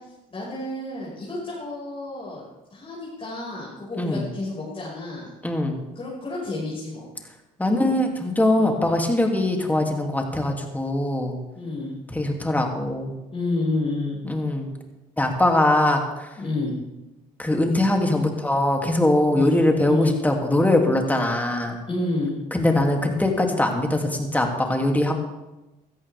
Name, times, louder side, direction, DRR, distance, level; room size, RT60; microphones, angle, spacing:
voice 1, 0.3-2.4 2.7-5.3 5.9-7.1 8.5-8.8 11.5-11.9 13.3-14.2 16.4-16.7 19.3-19.6 19.9-20.2 21.9-22.4, left 2 dB, 35° left, -7 dB, 5.6 m, -29 dB
voice 2, 5.4-5.8 7.6-11.3 12.1-13.1 14.2-14.7 15.2-16.3 17.4-21.8 22.5-25.1, left 1 dB, 10° left, 2 dB, 2.7 m, -22 dB
16.5 x 13.5 x 3.6 m, 1.0 s
supercardioid pair, 75°, 17 cm